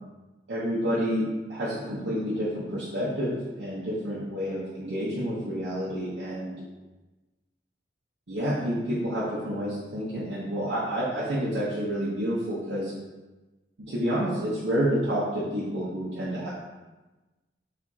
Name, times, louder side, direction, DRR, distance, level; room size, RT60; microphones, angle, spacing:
voice 1, 0.5-6.6 8.3-12.9 13.8-16.5, equal, 85° right, -9 dB, 0.9 m, -29 dB
4.7 x 3.4 x 2.7 m, 1.1 s
head